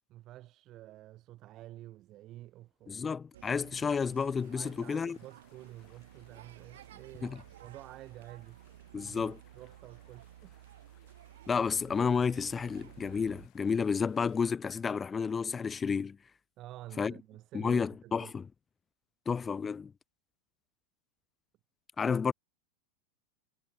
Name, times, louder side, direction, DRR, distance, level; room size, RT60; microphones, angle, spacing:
voice 1, 0.1-3.1 4.5-7.3 7.6-8.6 8.9-10.8 16.6-18.3, right 15 dB, 25° right, 4.8 m, -50 dB
voice 2, 2.9-5.2 7.2-7.4 8.9-9.4 11.5-16.2 17.0-17.1 17.5-18.5 19.3-19.9 22.0-22.3, left 6 dB, 10° left, 0.5 m, -31 dB
sound 1, 3.3-13.5, right 13 dB, 75° right, 3.6 m, -54 dB
sound 2, 4.3-14.6, left 17 dB, 25° left, 6.3 m, -68 dB
supercardioid pair, 180°, 0 cm